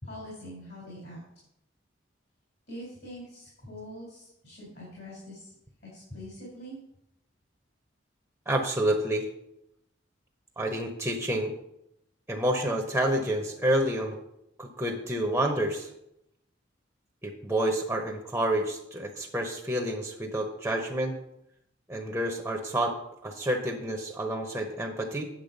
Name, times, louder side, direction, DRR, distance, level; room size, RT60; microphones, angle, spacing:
voice 1, 0.0-1.2 2.7-5.5 5.9-6.8, equal, 60° left, -5 dB, 3.6 m, -43 dB
voice 2, 8.5-9.3 10.6-11.5 12.3-14.2 14.6-15.9 17.2-21.2 21.9-23.0 23.2-25.3, right 1 dB, 10° right, 2 dB, 0.9 m, -29 dB
8.9 x 7.4 x 5.2 m, 0.81 s
head